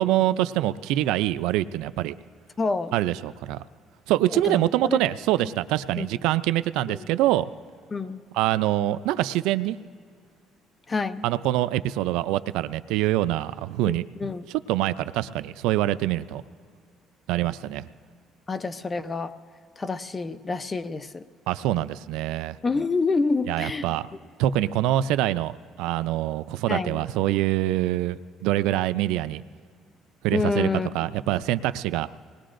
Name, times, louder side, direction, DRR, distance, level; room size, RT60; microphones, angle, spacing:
voice 1, 0.0-2.2 2.9-3.6 4.1-7.5 8.3-9.8 11.2-14.1 14.7-16.4 17.3-17.8 21.5-22.6 23.5-24.1 24.4-29.4 30.2-30.7 30.9-32.1, right 14 dB, 90° right, 14 dB, 0.4 m, -25 dB
voice 2, 2.6-3.0 4.3-5.0 6.0-6.1 6.9-7.1 7.9-8.2 10.9-11.3 13.9-14.4 18.5-19.3 19.8-21.3 22.6-23.9 26.7-27.0 30.3-30.9, left 4 dB, 25° left, 12 dB, 0.6 m, -27 dB
25.0 x 19.5 x 2.5 m, 2.2 s
cardioid pair, 110°, 0 cm